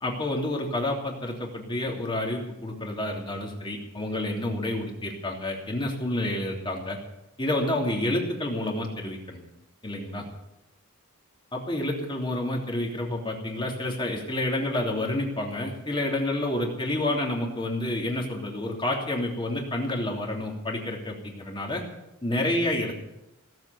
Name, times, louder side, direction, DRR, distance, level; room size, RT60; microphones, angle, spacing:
voice 1, 0.0-7.0 7.4-9.4 9.8-10.2 11.5-21.8 22.2-22.9, left 1 dB, 20° left, 0 dB, 3.1 m, -29 dB
17.5 x 7.8 x 9.3 m, 0.91 s
head